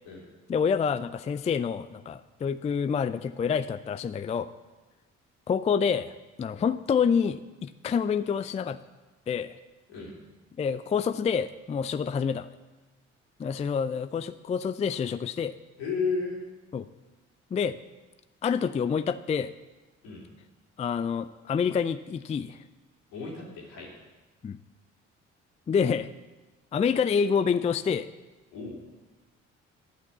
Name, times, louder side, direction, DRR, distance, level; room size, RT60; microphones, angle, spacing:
voice 1, 0.5-4.5 5.5-6.1 6.4-8.8 9.3-9.6 10.6-12.5 13.4-15.6 16.7-16.9 17.5-17.8 18.4-19.5 20.8-22.6 24.4-24.6 25.7-26.1 26.7-28.1, left 6 dB, 20° left, 13 dB, 0.4 m, -27 dB
voice 2, 15.8-16.5 20.0-20.2 23.1-23.9 28.5-28.8, left 4 dB, 75° left, -4 dB, 3.2 m, -33 dB
11.5 x 5.9 x 7.0 m, 1.2 s
hypercardioid pair, 45°, 36 cm